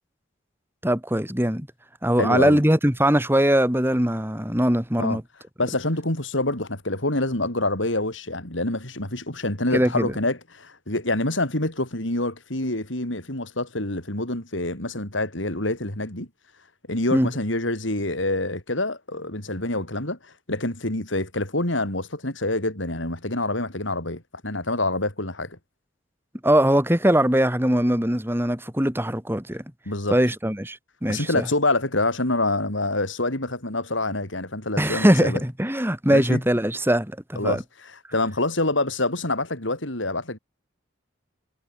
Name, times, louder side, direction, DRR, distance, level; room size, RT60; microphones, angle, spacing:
voice 1, 0.8-1.7 2.0-5.2 9.7-10.1 17.1-17.3 26.4-29.6 30.1-31.4 34.8-37.6, right 1 dB, 10° right, 2.8 m, -21 dB
voice 2, 2.2-2.6 5.0-5.2 5.6-16.3 16.9-20.2 20.5-25.6 29.9-30.2 31.1-35.4 36.1-36.4 37.4-37.6 38.1-40.4, left 2 dB, 75° left, 5.5 m, -26 dB
head